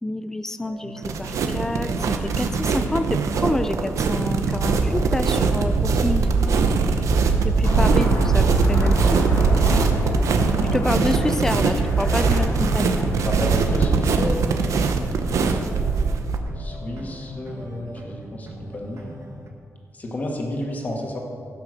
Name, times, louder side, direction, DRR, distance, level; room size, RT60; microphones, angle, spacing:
voice 1, 0.0-6.3 7.4-9.2 10.7-13.1 15.4-15.7, left 1 dB, 10° left, 10 dB, 0.4 m, -28 dB
sound 1, 0.6-19.5, right 2 dB, 60° right, 1.5 m, -40 dB
sound 2, 1.0-16.4, right 4 dB, 80° right, 0.9 m, -21 dB
Aircraft, 7.6-13.9, left 2 dB, 70° left, 1.8 m, -31 dB
voice 2, 13.3-14.3 16.6-18.5 18.7-19.1 20.0-21.2, left 1 dB, 30° left, 0 dB, 1.7 m, -30 dB
15.5 x 6.1 x 6.4 m, 2.3 s
wide cardioid pair, 170°, 5 cm